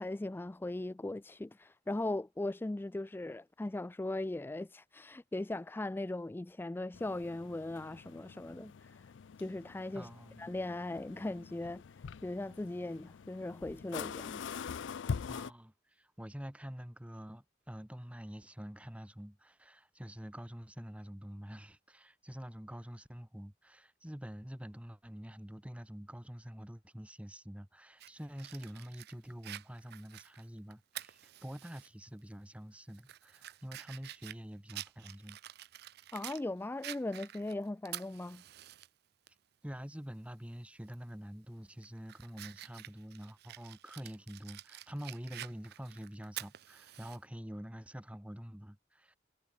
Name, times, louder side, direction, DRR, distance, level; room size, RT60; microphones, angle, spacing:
voice 1, 0.0-9.1 9.4-10.1 10.4-11.8 12.2-14.4 36.1-38.4, left 2 dB, 10° left, 0.3 m, -39 dB
sound 1, 6.9-15.5, left 6 dB, 80° left, 0.4 m, -44 dB
voice 2, 9.9-10.5 15.3-35.4 39.6-49.2, equal, 5° right, 1.3 m, -47 dB
Fire, 28.0-31.9 32.3-32.4 32.9-36.4 36.8-38.9 39.3-39.4 40.9-41.1 41.6-47.2, right 14 dB, 60° right, 0.5 m, -48 dB
head